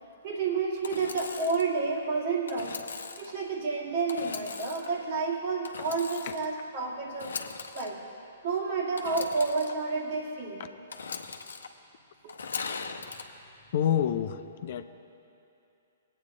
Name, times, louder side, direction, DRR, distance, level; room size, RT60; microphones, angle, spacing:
voice 1, 0.2-2.8 3.2-7.3 7.7-8.0 8.4-10.6 12.2-12.3, right 4 dB, 50° right, -1 dB, 2.0 m, -30 dB
Engine / Sawing, 0.8-1.7 2.5-3.3 4.1-4.9 5.6-6.5 7.1-7.9 9.0-9.7 10.9-11.7 12.3-13.2, left 5 dB, 75° left, 0.8 m, -39 dB
voice 2, 13.7-14.8, left 9 dB, 55° left, 9 dB, 0.6 m, -28 dB
20.0 x 8.7 x 3.8 m, 2.7 s
hypercardioid pair, 125°, 0 cm